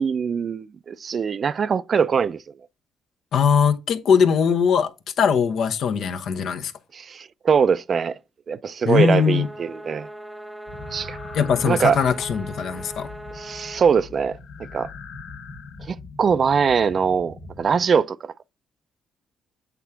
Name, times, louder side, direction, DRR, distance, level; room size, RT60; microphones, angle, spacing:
voice 1, 0.0-2.4 6.9-8.2 8.5-10.1 10.9-11.2 11.6-12.0 13.3-14.4 14.7-14.9 15.9-18.3, right 6 dB, 50° right, 0.4 m, -22 dB
voice 2, 3.3-6.7 8.8-9.5 11.3-13.1, left 6 dB, 70° left, 0.9 m, -20 dB
sound 1, 9.1-14.0, right 1 dB, 5° right, 0.6 m, -39 dB
sound 2, 10.7-17.8, left 3 dB, 90° left, 1.9 m, -41 dB
8.2 x 3.6 x 5.7 m
cardioid pair, 90°, 0 cm